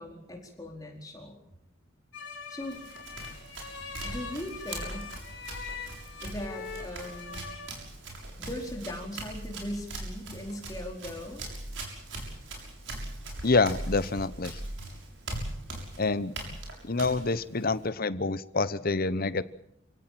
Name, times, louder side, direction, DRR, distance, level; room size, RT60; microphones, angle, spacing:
voice 1, 0.0-1.4 2.5-2.8 4.0-5.1 6.2-7.4 8.4-11.4, left 1 dB, 20° left, 0 dB, 4.6 m, -39 dB
sound 1, 2.1-7.7, left 5 dB, 60° left, 4.7 m, -42 dB
Run, 2.6-17.9, right 2 dB, 65° right, 6.9 m, -40 dB
voice 2, 13.4-14.6 16.0-16.6 16.8-19.4, left 3 dB, 45° left, 15 dB, 1.0 m, -27 dB
29.0 x 17.0 x 7.7 m, 0.77 s
head